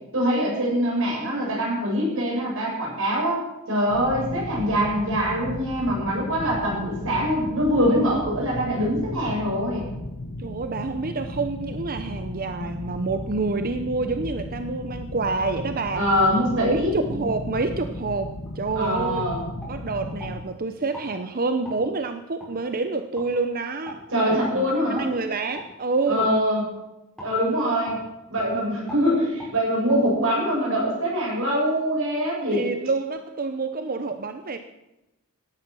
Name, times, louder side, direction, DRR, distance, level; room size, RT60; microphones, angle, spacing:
voice 1, 0.1-9.8 15.9-17.0 18.7-19.4 24.1-25.1 26.1-26.6 27.2-28.0 28.3-32.7, equal, 65° right, -2 dB, 7.9 m, -23 dB
sound 1, 3.9-20.4, left 1 dB, 55° left, 1.6 m, -35 dB
voice 2, 10.4-16.1 16.6-19.3 19.7-24.0 24.5-26.3 32.5-34.6, right 3 dB, 40° right, 9 dB, 0.8 m, -28 dB
sound 2, 18.4-18.6 19.0-19.2 19.6-20.3 20.9-21.1 21.6-21.8 22.4-22.5 23.1-23.3 23.8-24.0 24.4-24.6 24.9-25.1 25.5-25.7 26.2-26.3 27.2-27.3 27.9-28.0 28.3-28.5 28.9-29.0 29.4-29.5 29.9-30.0, equal, 5° left, 7.8 m, -40 dB
17.5 x 12.5 x 6.3 m, 0.96 s
head